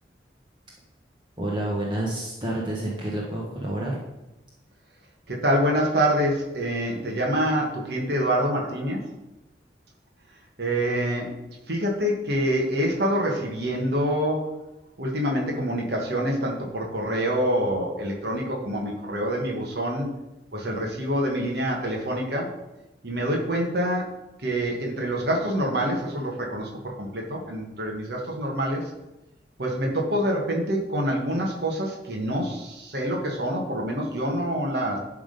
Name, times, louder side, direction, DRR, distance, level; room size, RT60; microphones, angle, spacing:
voice 1, 1.4-4.0, right 1 dB, 25° right, -3 dB, 1.1 m, -29 dB
voice 2, 5.3-9.0 10.6-11.3 11.7-14.6 15.0-20.1 20.5-22.5 23.0-24.1 24.4-28.9 29.6-35.0, equal, 65° right, -1 dB, 1.4 m, -26 dB
11.0 x 3.7 x 5.2 m, 0.98 s
head